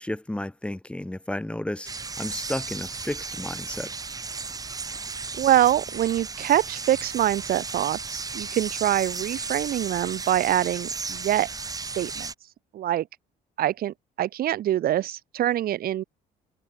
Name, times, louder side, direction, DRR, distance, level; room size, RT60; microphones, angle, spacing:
voice 1, 0.0-1.9 2.2-3.9, left 1 dB, 5° left, 1.6 m, -32 dB
sound 1, 1.8-12.3, right 4 dB, 20° right, 1.2 m, -35 dB
voice 2, 5.4-11.5 11.9-12.3 12.7-13.1 13.6-16.0, right 12 dB, 60° right, 1.7 m, -24 dB
cardioid pair, 110°, 17 cm